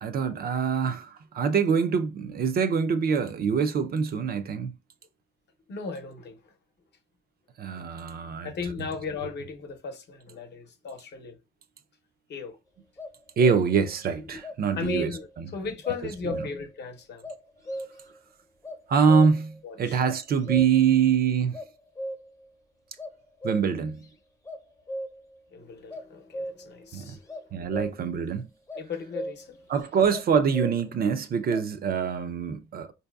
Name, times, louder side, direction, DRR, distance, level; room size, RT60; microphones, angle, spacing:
voice 1, 0.0-4.7 7.6-8.5 13.4-15.1 15.4-15.5 16.2-16.3 18.9-21.6 23.4-24.0 26.9-27.2 27.5-28.5 29.7-32.9, right 6 dB, 50° right, 0.4 m, -24 dB
voice 2, 5.7-6.5 8.4-11.4 12.3-12.6 14.3-14.4 14.8-17.3 19.6-20.0 25.5-27.7 28.7-29.6, left 4 dB, 60° left, 0.7 m, -36 dB
sound 1, 13.0-13.9 14.4-15.4 15.8-16.8 17.2-18.2 18.6-19.6 20.0-21.0 21.5-22.5 23.0-24.1 24.4-25.4 25.9-26.8 27.3-28.2 28.7-29.6 30.1-31.0 31.5-31.7, equal, 15° left, 0.6 m, -37 dB
4.4 x 2.7 x 2.2 m
cardioid pair, 90°, 20 cm